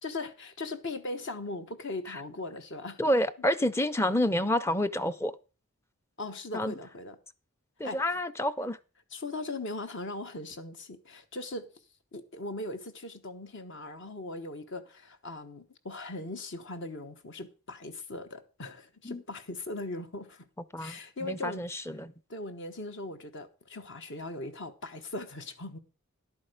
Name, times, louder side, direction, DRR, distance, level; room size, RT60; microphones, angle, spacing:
voice 1, 0.0-3.0 6.2-7.2 7.8-8.0 9.1-11.7 12.1-20.5 20.8-21.6 22.3-25.8, left 2 dB, 60° left, 1.2 m, -39 dB
voice 2, 3.0-5.4 6.5-6.7 7.8-8.8 19.0-19.2 20.7-22.1, left 1 dB, 10° left, 0.5 m, -29 dB
11.0 x 8.7 x 5.0 m
head